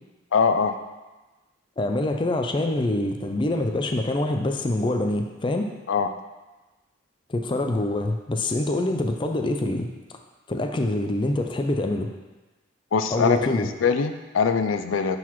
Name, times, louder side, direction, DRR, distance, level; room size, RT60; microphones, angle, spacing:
voice 1, 0.3-0.8 5.9-6.1 12.9-15.2, left 5 dB, 85° left, 8 dB, 0.4 m, -22 dB
voice 2, 1.8-5.7 7.3-9.9 10.5-12.1 13.1-13.7, left 1 dB, 25° left, 4 dB, 0.4 m, -25 dB
10.0 x 4.0 x 3.1 m, 1.2 s
head